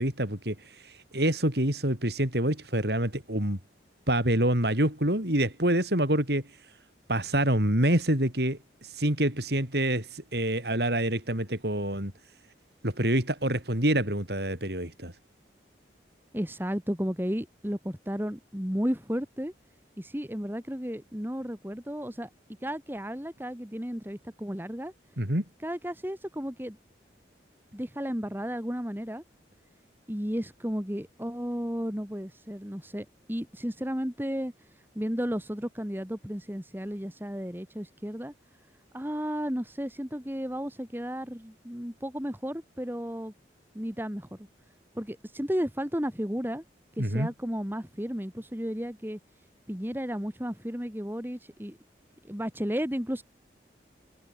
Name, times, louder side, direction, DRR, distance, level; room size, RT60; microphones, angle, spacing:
voice 1, 0.0-3.6 4.1-6.4 7.1-12.1 12.8-15.1 25.2-25.4 47.0-47.3, right 1 dB, 60° right, 5.3 m, -26 dB
voice 2, 16.3-19.5 20.0-22.3 22.6-24.9 25.6-26.8 27.7-29.2 30.1-34.5 34.9-38.3 38.9-43.3 43.7-44.3 44.9-46.6 47.0-49.2 49.7-51.8 52.3-53.2, equal, 10° right, 2.5 m, -33 dB
head